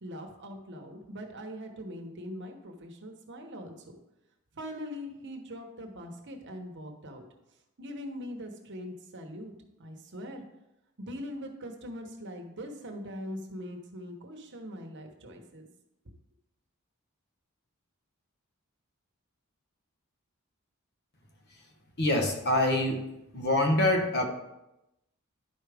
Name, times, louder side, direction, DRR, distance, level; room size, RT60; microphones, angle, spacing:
voice 1, 0.0-4.0 4.5-7.2 7.8-9.5 9.8-10.4 11.0-15.7, equal, 55° right, 3 dB, 1.1 m, -41 dB
voice 2, 22.0-23.0 23.3-24.2, left 1 dB, 50° left, 3 dB, 1.1 m, -25 dB
11.0 x 4.9 x 3.5 m, 0.91 s
head